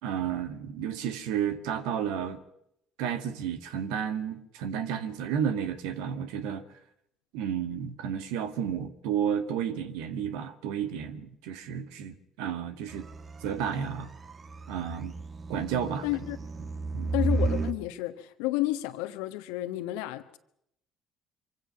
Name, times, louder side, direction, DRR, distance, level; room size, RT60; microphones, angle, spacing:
voice 1, 0.0-2.4 3.0-6.6 7.3-13.1 13.4-14.1 14.7-15.1 15.5-16.1 16.9-17.1, right 8 dB, 70° right, 1.9 m, -32 dB
sound 1, 12.9-17.8, right 3 dB, 35° right, 1.6 m, -33 dB
voice 2, 16.0-16.4 17.1-20.4, left 16 dB, 70° left, 1.3 m, -31 dB
25.5 x 25.0 x 5.9 m
hypercardioid pair, 55°, 0 cm